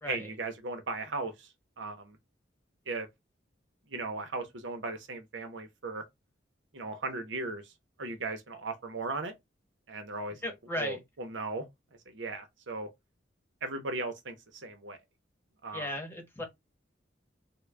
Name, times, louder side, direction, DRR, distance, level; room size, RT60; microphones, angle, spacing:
voice 1, 0.1-1.5 1.8-2.2 2.9-3.1 3.9-6.0 6.7-7.7 8.0-9.3 9.9-10.4 10.8-11.7 12.1-12.9 13.6-15.0 15.6-15.9, right 3 dB, 90° right, 0.8 m, -37 dB
voice 2, 10.4-11.0 15.7-16.4, equal, 10° left, 0.9 m, -36 dB
3.7 x 2.2 x 3.3 m
head